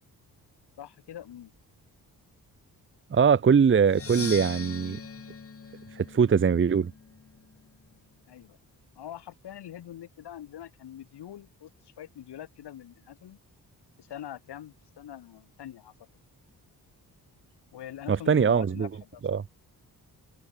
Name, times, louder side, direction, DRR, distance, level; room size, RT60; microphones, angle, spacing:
voice 1, 0.8-1.5 8.3-8.6 9.0-13.4 14.0-15.9 17.7-19.2, left 11 dB, 85° left, 3.6 m, -44 dB
voice 2, 3.1-5.0 6.0-6.9 18.1-18.9 19.2-19.4, right 6 dB, 30° right, 0.7 m, -22 dB
Percussion, 3.8-7.6, left 5 dB, 35° left, 1.9 m, -41 dB
cardioid pair, 70°, 39 cm